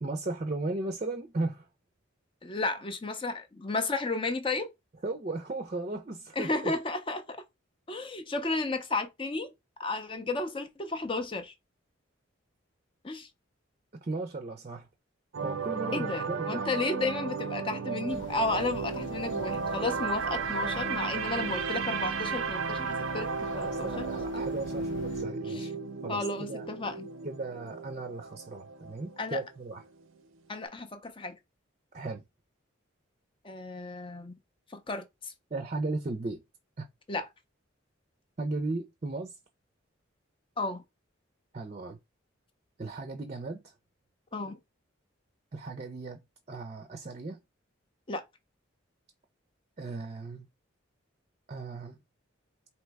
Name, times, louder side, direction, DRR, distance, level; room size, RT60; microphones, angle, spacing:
voice 1, 0.0-1.7 5.0-6.7 14.0-14.9 15.4-16.7 23.5-25.7 26.0-26.7 27.2-29.8 31.9-32.2 35.5-36.4 36.8-36.9 38.4-39.4 41.5-42.0 42.8-43.7 45.5-46.2 46.5-47.4 49.8-50.5 51.5-52.0, right 2 dB, 35° right, 0.5 m, -36 dB
voice 2, 2.4-4.7 6.4-7.4 7.9-9.5 9.8-11.5 13.0-13.3 15.9-23.9 24.3-24.4 25.5-25.7 26.1-27.1 29.2-29.4 30.5-31.4 33.4-34.4 34.7-35.3 37.1-37.3 40.6-40.8 44.3-44.6 48.1-48.2, left 3 dB, 25° left, 0.5 m, -33 dB
sound 1, 15.3-29.5 29.8-30.0, right 5 dB, 85° right, 0.6 m, -34 dB
sound 2, 18.1-25.2, left 3 dB, 70° left, 0.6 m, -49 dB
3.2 x 2.9 x 4.6 m
head